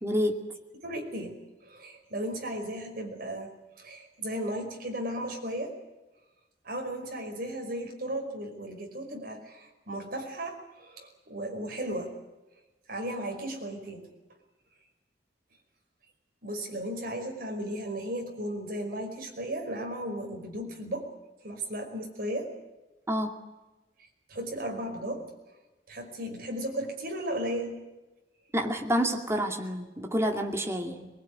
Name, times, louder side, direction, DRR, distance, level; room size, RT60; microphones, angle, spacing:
voice 1, 0.0-0.4 23.1-23.3 28.5-31.1, equal, 15° right, 3 dB, 2.4 m, -28 dB
voice 2, 0.8-5.8 6.6-12.2 12.9-14.1 16.4-21.1 21.4-22.5 24.3-25.3 25.9-27.8, right 1 dB, 55° right, 2 dB, 5.4 m, -35 dB
22.5 x 21.5 x 9.7 m, 1.1 s
head